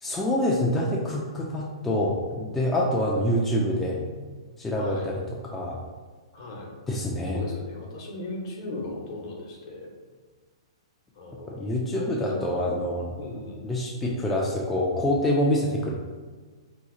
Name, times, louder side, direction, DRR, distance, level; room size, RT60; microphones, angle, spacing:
voice 1, 0.0-4.0 4.6-5.8 6.9-7.4 11.4-13.1 13.6-15.9, left 1 dB, 10° left, -4 dB, 0.3 m, -26 dB
voice 2, 3.3-4.2 4.7-5.1 6.3-6.8 7.3-9.9 11.1-12.7 13.2-13.6, left 2 dB, 50° left, -1 dB, 0.9 m, -38 dB
2.8 x 2.3 x 3.7 m, 1.4 s
hypercardioid pair, 140°, 3 cm